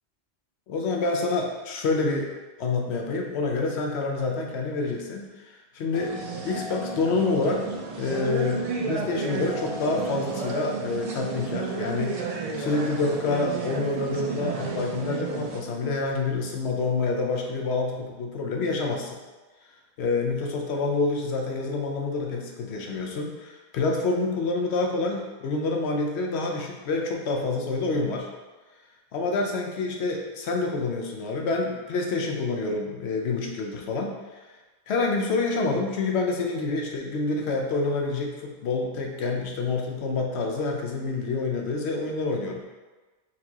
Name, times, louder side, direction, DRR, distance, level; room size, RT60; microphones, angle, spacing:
voice 1, 0.7-2.3 2.6-5.3 5.7-6.2 6.4-7.7 8.0-19.2 20.0-28.3 29.1-34.2 34.9-42.6, left 3 dB, 90° left, 1 dB, 0.9 m, -27 dB
sound 1, 5.9-15.6, right 4 dB, 55° right, 0.4 m, -32 dB
4.3 x 2.9 x 2.8 m, 1.2 s
omnidirectional pair, 1.1 m